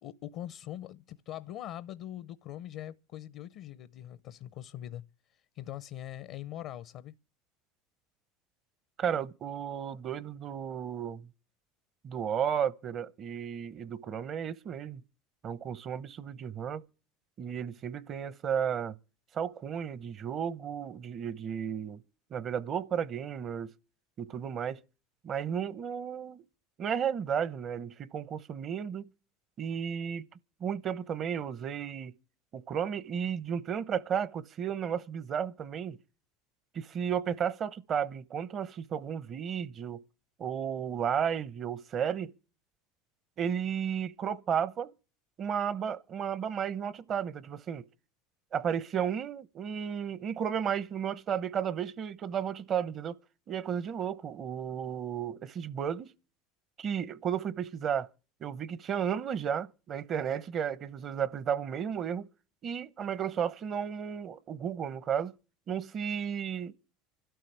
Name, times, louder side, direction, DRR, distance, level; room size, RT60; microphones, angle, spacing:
voice 1, 0.0-7.1, left 12 dB, 60° left, 0.6 m, -42 dB
voice 2, 9.0-11.3 12.0-15.0 15.4-16.8 17.4-19.0 19.3-22.0 22.3-23.7 24.2-24.8 25.2-26.4 26.8-29.1 29.6-30.3 30.6-32.1 32.5-36.0 36.7-40.0 40.4-42.3 43.4-44.9 45.4-47.9 48.5-53.2 53.5-56.1 56.8-58.1 58.4-62.3 62.6-65.3 65.7-66.7, right 8 dB, 40° right, 0.9 m, -33 dB
26.5 x 12.5 x 3.4 m
hypercardioid pair, 85°, 0 cm